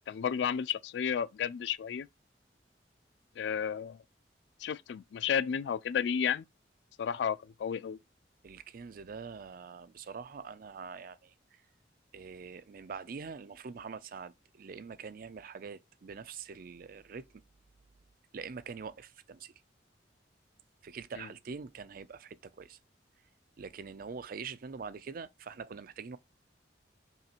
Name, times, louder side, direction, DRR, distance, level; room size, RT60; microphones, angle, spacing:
voice 1, 0.1-2.1 3.4-4.0 4.6-6.4 7.0-8.0 21.2-21.3, left 7 dB, 70° left, 0.3 m, -32 dB
voice 2, 8.4-11.6 12.1-17.3 18.3-19.5 20.8-22.8 23.6-26.2, right 5 dB, 50° right, 0.4 m, -44 dB
5.5 x 2.9 x 2.4 m
head